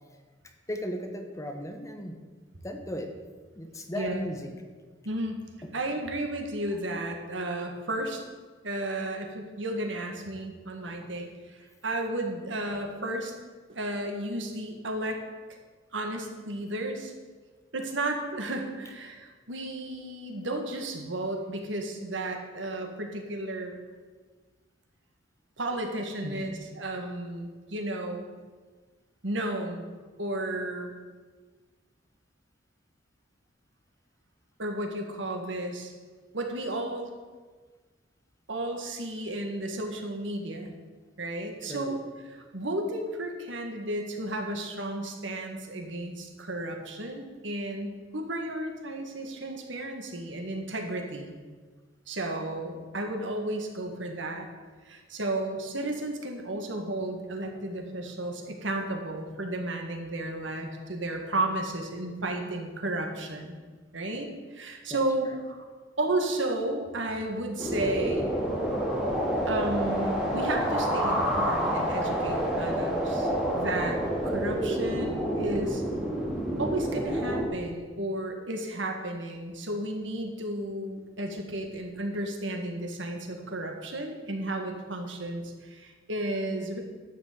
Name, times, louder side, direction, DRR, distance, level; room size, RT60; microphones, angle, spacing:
voice 1, 0.7-2.2 2.6-3.1 3.5-4.6 5.6-5.7 10.8-11.1 26.2-26.6 41.7-42.0 64.9-65.0, left 1 dB, 15° left, 5 dB, 1.1 m, -36 dB
voice 2, 4.0-4.3 5.1-5.4 5.7-8.2 8.6-13.3 13.7-15.2 15.9-17.1 17.7-23.7 25.6-28.3 29.2-29.8 30.2-30.9 34.6-35.9 36.3-37.1 38.5-40.7 41.2-42.0 42.3-51.3 52.1-54.5 54.8-63.6 63.9-65.6 66.0-68.3 69.5-75.8 76.6-86.8, right 1 dB, 80° right, 3 dB, 1.8 m, -33 dB
sound 1, 67.6-77.4, right 1 dB, 5° right, 2.3 m, -28 dB
11.5 x 6.3 x 8.1 m, 1.4 s
head